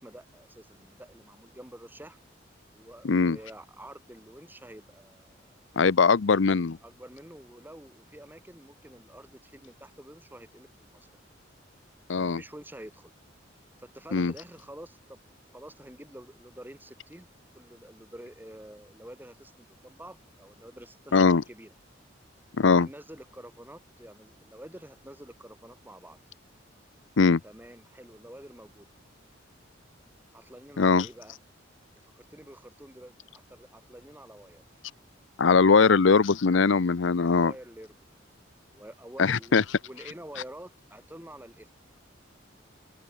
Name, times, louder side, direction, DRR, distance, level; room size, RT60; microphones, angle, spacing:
voice 1, 0.0-2.2 2.7-5.5 6.8-11.1 12.1-13.1 13.8-15.2 15.5-17.3 17.5-21.7 22.7-26.2 27.4-28.9 30.3-31.4 32.0-34.6 35.6-35.9 37.3-41.7, right 1 dB, 10° right, 4.1 m, -48 dB
voice 2, 3.0-3.4 5.8-6.8 12.1-12.4 14.1-14.3 21.1-21.4 22.6-22.9 27.2-27.4 30.8-31.1 35.4-37.5 39.2-39.6, left 4 dB, 70° left, 0.6 m, -21 dB
head